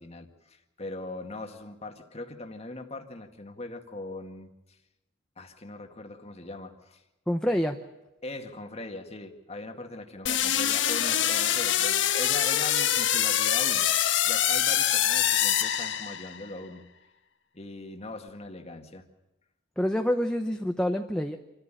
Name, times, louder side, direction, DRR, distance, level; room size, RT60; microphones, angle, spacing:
voice 1, 0.0-4.8 5.4-7.0 8.2-13.9 14.3-16.9 17.5-19.1, left 2 dB, 35° left, 5 dB, 1.9 m, -40 dB
voice 2, 7.3-7.8 19.8-21.4, equal, 5° left, 4 dB, 0.8 m, -27 dB
sound 1, 10.3-16.5, left 10 dB, 65° left, 1.2 m, -25 dB
27.0 x 14.0 x 9.1 m, 0.98 s
head